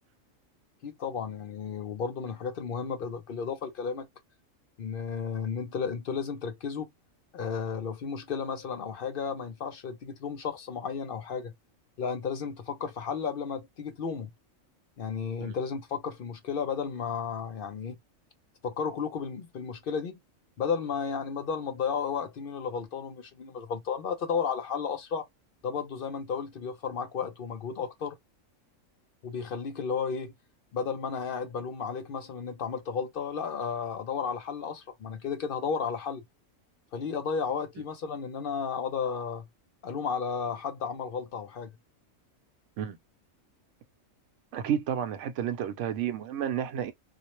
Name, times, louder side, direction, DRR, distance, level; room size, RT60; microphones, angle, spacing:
voice 1, 0.8-4.1 4.8-6.9 7.3-11.5 12.0-14.3 15.0-18.0 18.6-20.2 20.6-25.3 25.6-28.2 29.2-30.3 30.7-36.2 36.9-39.5 39.8-41.8, left 6 dB, 60° left, 0.6 m, -33 dB
voice 2, 44.5-46.9, right 9 dB, 70° right, 0.9 m, -31 dB
2.5 x 2.0 x 2.8 m
omnidirectional pair, 1.4 m